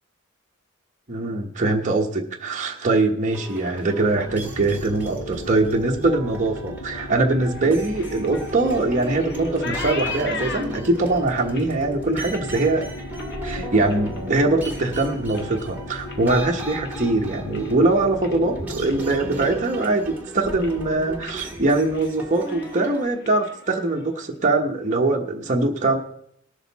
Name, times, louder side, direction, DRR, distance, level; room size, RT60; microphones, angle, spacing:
voice 1, 1.1-12.8 13.4-26.0, right 2 dB, 40° right, 0 dB, 1.1 m, -22 dB
sound 1, 3.3-23.1, right 2 dB, 10° right, 2.2 m, -36 dB
sound 2, 3.9-19.7, left 1 dB, 85° left, 1.0 m, -37 dB
sound 3, 7.5-14.2 14.5-15.0 15.3-17.8 18.1-18.5 18.8-19.0 19.4-20.2 20.5-20.9 21.2-21.4 21.7-22.1 22.4-24.2, left 5 dB, 55° left, 1.1 m, -39 dB
19.0 x 6.6 x 4.1 m, 0.70 s
head